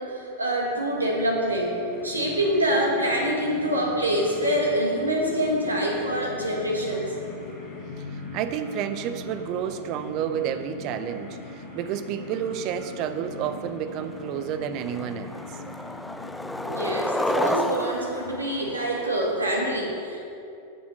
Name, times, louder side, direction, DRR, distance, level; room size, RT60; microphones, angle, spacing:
voice 1, 0.0-1.7 2.0-7.2 16.6-20.3, equal, 80° right, -2 dB, 2.0 m, -25 dB
sound 1, 0.9-17.6, left 3 dB, 20° left, 2.6 m, -41 dB
voice 2, 8.0-15.4, right 9 dB, 40° right, 10 dB, 0.6 m, -30 dB
Skateboard, 13.7-13.8 14.2-14.5 14.8-19.4, left 1 dB, 5° left, 0.4 m, -31 dB
9.6 x 7.2 x 6.2 m, 2.7 s
figure-of-eight pair, 90°, 0 cm